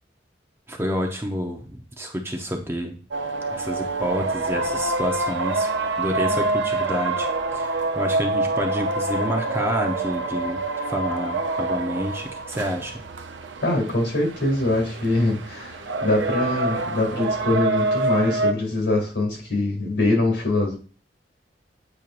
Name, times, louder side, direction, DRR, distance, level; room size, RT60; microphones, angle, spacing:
voice 1, 0.7-2.9 3.5-5.7 6.0-13.0, equal, 15° right, 3 dB, 0.8 m, -29 dB
sound 1, 3.1-18.5, right 2 dB, 85° right, 0.6 m, -26 dB
voice 2, 13.6-20.8, left 2 dB, 75° left, 1 dB, 2.4 m, -23 dB
8.7 x 4.5 x 2.5 m, 0.39 s
head